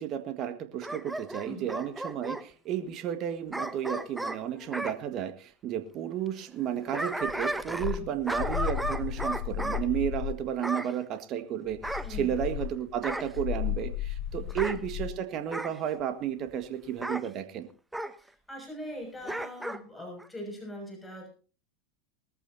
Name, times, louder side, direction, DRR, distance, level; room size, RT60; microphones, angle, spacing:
voice 1, 0.0-17.7, right 10 dB, 45° right, 9 dB, 1.7 m, -33 dB
Bark / Growling, 0.8-2.4 3.5-5.0 6.6-8.0 8.3-9.8 10.6-10.9 11.8-12.6 13.0-13.4 14.5-14.8 15.5-15.8 17.0-17.3 17.9-18.1 19.2-19.8 20.2-20.3, right 1 dB, 5° right, 1.0 m, -34 dB
voice 2, 1.4-1.7 8.0-8.1 12.0-12.4 14.4-14.6 18.2-21.3, equal, 10° left, 2 dB, 6.5 m, -41 dB
sound 1, 7.3-10.5 11.7-15.1, left 12 dB, 55° left, 2.3 m, -34 dB
21.0 x 14.0 x 2.8 m, 0.36 s
hypercardioid pair, 90°, 0 cm